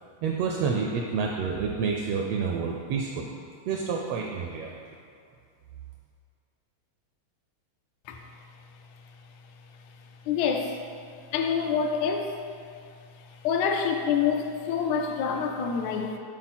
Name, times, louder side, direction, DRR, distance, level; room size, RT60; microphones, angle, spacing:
voice 1, 0.2-3.3 3.7-4.7, right 5 dB, 80° right, 1 dB, 1.4 m, -29 dB
voice 2, 10.3-10.8 11.3-12.4 13.4-16.2, left 6 dB, 80° left, 3 dB, 2.0 m, -26 dB
8.6 x 4.1 x 4.3 m, 2.3 s
omnidirectional pair, 3.3 m